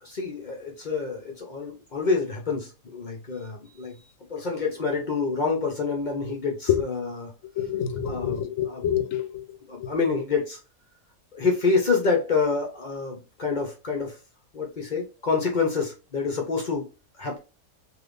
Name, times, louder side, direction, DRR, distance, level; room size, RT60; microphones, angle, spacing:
voice 1, 0.0-4.0 4.3-7.3 8.1-8.8 9.7-10.6 11.3-14.2 14.5-16.9 17.2-17.4, left 4 dB, 45° left, 0.7 m, -27 dB
voice 2, 7.6-9.4 9.8-9.9, left 9 dB, 70° left, 1.0 m, -26 dB
3.4 x 2.7 x 2.5 m
omnidirectional pair, 1.4 m